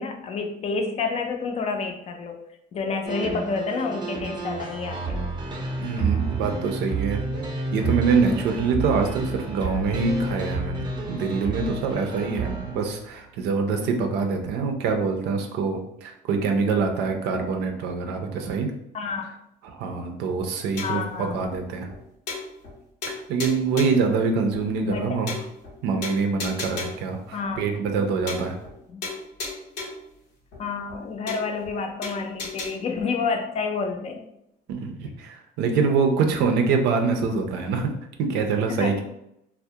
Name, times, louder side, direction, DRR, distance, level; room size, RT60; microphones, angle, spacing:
voice 1, 0.0-5.3 18.0-18.2 18.9-19.3 20.8-21.5 24.8-25.2 27.3-27.6 28.9-29.0 30.6-34.2 38.7-39.0, left 4 dB, 40° left, 4 dB, 0.4 m, -29 dB
sound 1, 3.0-13.2, right 4 dB, 25° right, 0.5 m, -30 dB
voice 2, 5.8-7.3 7.7-18.7 19.7-21.9 23.1-25.4 25.8-28.6 34.7-37.9 38.2-39.0, right 4 dB, 85° right, 4 dB, 0.5 m, -25 dB
sound 2, 20.8-21.1 21.5-21.6 21.9-22.0 22.3-22.8 23.0-24.1 24.5-24.6 24.9-25.0 25.3-25.7 26.0-27.1 27.5-27.6 27.9-28.0 28.3-28.8 29.0-30.1 30.5-30.6 30.9-31.0 31.3-31.7 32.0-32.7, left 3 dB, 90° left, 0.7 m, -34 dB
2.3 x 2.0 x 2.7 m, 0.79 s
cardioid pair, 110°, 17 cm